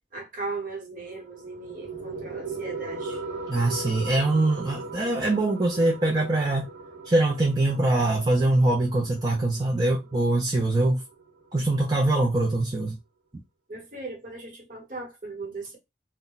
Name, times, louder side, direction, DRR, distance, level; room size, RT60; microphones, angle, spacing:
voice 1, 0.1-3.2 13.7-15.8, right 3 dB, 45° right, 1.0 m, -37 dB
sound 1, 1.1-12.1, right 3 dB, 85° right, 0.9 m, -39 dB
voice 2, 3.5-6.7 7.1-11.0 11.5-13.0, right 2 dB, 20° right, 0.4 m, -23 dB
2.2 x 2.1 x 3.8 m
head